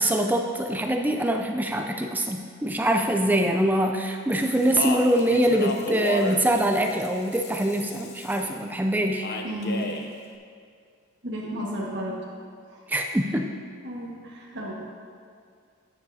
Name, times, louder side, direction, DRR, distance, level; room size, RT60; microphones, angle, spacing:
voice 1, 0.0-9.3 12.9-13.5, right 1 dB, 10° right, 3 dB, 0.4 m, -24 dB
Speech, 4.3-8.5 9.2-10.1, left 1 dB, 50° left, 0.7 m, -33 dB
voice 2, 9.4-9.9 11.2-12.1 12.7-12.8 13.8-14.7, equal, 55° right, -5 dB, 1.6 m, -32 dB
11.5 x 8.8 x 2.8 m, 2.2 s
head